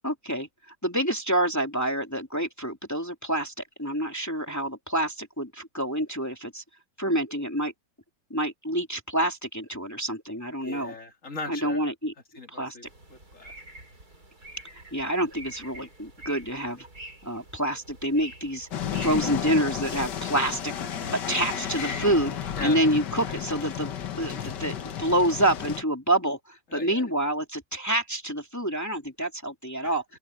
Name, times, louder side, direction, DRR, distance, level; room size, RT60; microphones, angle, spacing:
voice 1, 0.0-0.5 0.8-3.5 3.8-6.6 7.0-7.7 8.3-10.9 11.5-12.1 12.5-12.8 14.9-16.9 17.2-18.7 19.0-20.7 21.1-30.0, right 1 dB, 10° left, 2.8 m, -27 dB
voice 2, 10.6-11.9 12.3-13.5 21.3-21.5 22.6-22.8 26.7-27.0 29.8-29.9, left 3 dB, 45° left, 3.1 m, -39 dB
sound 1, 12.8-19.6, right 1 dB, 60° right, 6.8 m, -47 dB
sound 2, 18.7-25.8, left 9 dB, 80° left, 1.9 m, -32 dB
open air
omnidirectional pair, 1.8 m